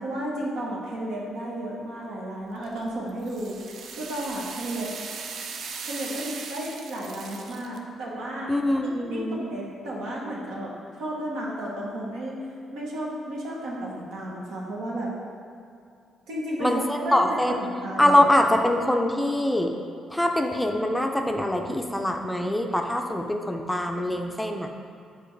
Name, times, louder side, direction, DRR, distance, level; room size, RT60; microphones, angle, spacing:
voice 1, 0.0-3.6 3.9-4.9 5.8-8.5 9.1-12.4 12.7-15.1 16.3-18.2, right 1 dB, 85° right, -4 dB, 1.2 m, -33 dB
sound 1, 2.6-7.8, right 5 dB, 70° right, 0.4 m, -38 dB
voice 2, 8.5-9.4 16.6-17.6 18.0-19.7 20.1-24.7, left 1 dB, 5° left, 3 dB, 0.4 m, -23 dB
6.7 x 4.3 x 3.2 m, 2.5 s
cardioid pair, 90°, 0 cm